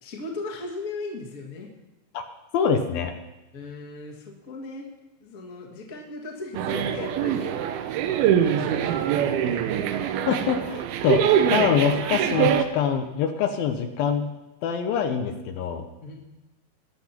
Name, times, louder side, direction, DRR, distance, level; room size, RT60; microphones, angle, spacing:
voice 1, 0.0-1.7 3.5-4.9 5.2-7.5 8.4-9.8 16.0-16.1, left 3 dB, 35° left, 0 dB, 1.5 m, -37 dB
voice 2, 2.5-3.1 10.3-11.2 11.5-14.3 14.6-15.9, left 7 dB, 80° left, 6 dB, 2.6 m, -24 dB
sound 1, 6.5-12.6, right 9 dB, 80° right, 2.7 m, -24 dB
20.5 x 7.7 x 4.4 m, 1.1 s
omnidirectional pair, 4.4 m